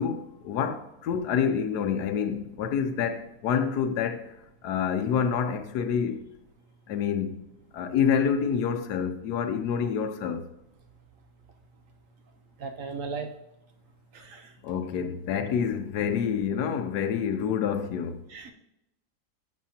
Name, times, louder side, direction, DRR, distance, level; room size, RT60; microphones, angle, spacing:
voice 1, 0.0-4.3 4.6-6.2 6.9-7.4 7.7-10.4 14.6-18.2, left 7 dB, 80° left, 1.3 m, -27 dB
voice 2, 12.6-13.3 14.1-14.5 18.3-18.5, right 5 dB, 65° right, 0.9 m, -36 dB
11.0 x 6.4 x 2.8 m
omnidirectional pair, 1.7 m